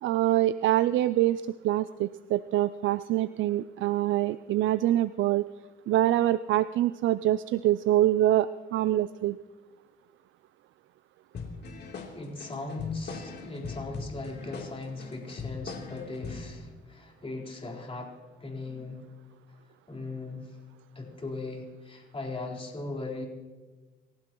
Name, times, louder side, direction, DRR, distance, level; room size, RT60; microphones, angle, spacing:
voice 1, 0.0-5.5 5.9-9.4, right 14 dB, 75° right, 14 dB, 0.4 m, -25 dB
sound 1, 11.3-16.5, left 4 dB, 55° left, 3.3 m, -40 dB
voice 2, 12.1-19.0 19.9-20.6 20.9-23.3, left 3 dB, 30° left, -1 dB, 4.1 m, -38 dB
28.0 x 15.5 x 3.0 m, 1.3 s
cardioid pair, 90°, 20 cm